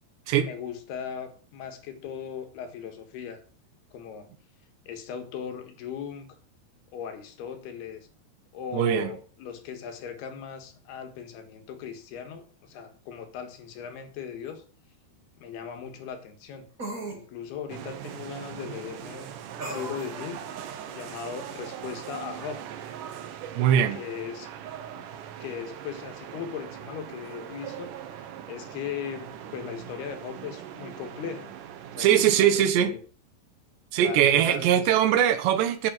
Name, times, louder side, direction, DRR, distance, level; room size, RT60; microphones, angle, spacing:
voice 1, 0.4-3.4 3.9-4.3 4.9-6.4 6.9-8.1 8.5-14.6 15.4-16.7 17.1-19.3 19.6-20.4 20.9-22.7 23.9-24.5 25.4-31.5 31.9-33.0 34.0-34.9, left 7 dB, 70° left, 3.5 m, -38 dB
voice 2, 8.7-9.1 23.6-24.0 32.0-32.9 33.9-35.9, right 10 dB, 90° right, 3.5 m, -21 dB
sound 1, 14.5-14.6 16.8-17.2 19.6-20.1, right 2 dB, 25° right, 2.4 m, -36 dB
sound 2, 17.7-32.3, right 9 dB, 65° right, 2.2 m, -41 dB
8.8 x 7.6 x 7.6 m
omnidirectional pair, 4.8 m